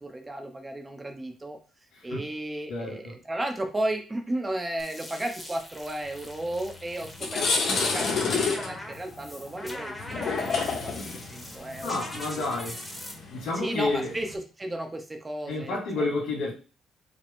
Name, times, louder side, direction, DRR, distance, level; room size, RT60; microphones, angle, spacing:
voice 1, 0.0-1.6 2.0-10.9 11.3-12.4 13.5-16.1, right 1 dB, 20° right, 4 dB, 0.8 m, -34 dB
voice 2, 2.7-3.1 11.8-12.8 13.3-14.1 15.5-16.5, left 3 dB, 80° left, -2 dB, 1.9 m, -30 dB
sound 1, 4.8-13.1, left 1 dB, 10° left, 1.1 m, -42 dB
sound 2, 6.5-6.7 7.0-14.3, left 4 dB, 65° left, 1.1 m, -30 dB
5.0 x 2.1 x 3.6 m, 0.35 s
cardioid pair, 90°, 0 cm